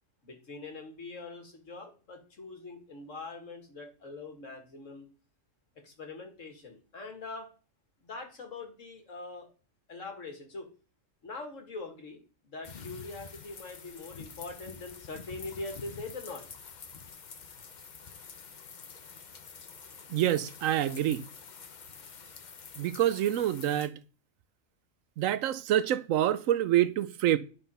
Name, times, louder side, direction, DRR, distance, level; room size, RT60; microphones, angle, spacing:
voice 1, 0.2-5.1 5.8-7.5 8.0-9.5 9.9-10.7 11.2-16.4, left 3 dB, 75° left, 2.2 m, -43 dB
sound 1, 12.6-23.9, left 6 dB, 40° left, 0.8 m, -48 dB
voice 2, 20.1-21.2 22.8-24.0 25.2-27.4, right 12 dB, 85° right, 1.0 m, -27 dB
9.8 x 4.1 x 5.5 m
omnidirectional pair, 1.3 m